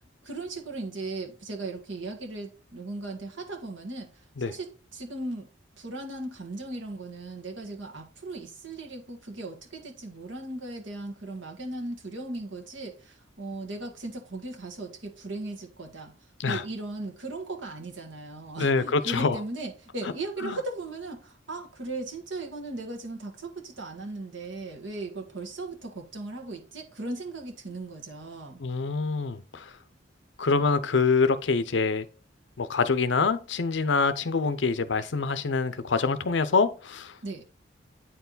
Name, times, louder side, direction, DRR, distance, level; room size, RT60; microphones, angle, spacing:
voice 1, 0.2-5.5 5.8-16.1 16.4-28.6 37.2-37.4, right 2 dB, 80° right, 1.7 m, -37 dB
voice 2, 18.6-19.4 20.4-20.6 28.6-29.6 30.4-32.0 32.6-37.1, left 4 dB, 70° left, 0.6 m, -25 dB
8.7 x 4.6 x 4.0 m
head